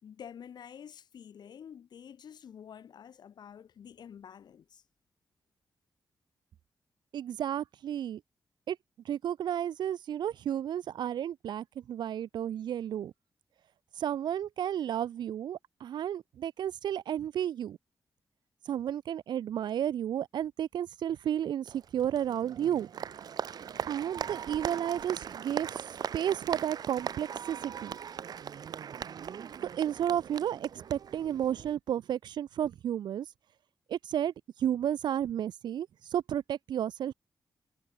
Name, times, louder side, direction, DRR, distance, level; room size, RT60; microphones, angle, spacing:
voice 1, 0.0-4.8, left 8 dB, 75° left, 2.8 m, -49 dB
voice 2, 7.1-8.2 8.7-8.8 9.1-13.1 14.0-17.8 18.7-22.9 23.9-25.7 26.1-28.0 29.8-33.3 33.9-34.3 34.6-35.9 36.1-37.1, right 10 dB, 85° right, 0.4 m, -32 dB
Applause, 21.7-31.8, right 8 dB, 65° right, 0.8 m, -40 dB
wide cardioid pair, 125°, 7 cm